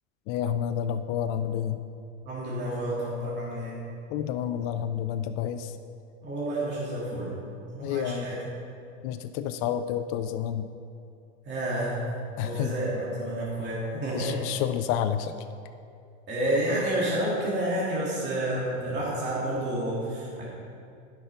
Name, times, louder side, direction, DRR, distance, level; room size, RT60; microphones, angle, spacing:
voice 1, 0.3-1.8 4.1-5.7 7.8-8.3 9.0-10.7 12.4-12.7 14.1-15.3, left 9 dB, 40° left, 10 dB, 0.4 m, -29 dB
voice 2, 2.2-3.8 6.2-7.3 7.7-8.4 11.4-12.0 12.4-14.4 16.3-20.5, right 1 dB, 30° right, -7 dB, 2.3 m, -29 dB
10.5 x 5.9 x 5.5 m, 2.5 s
hypercardioid pair, 115°, 38 cm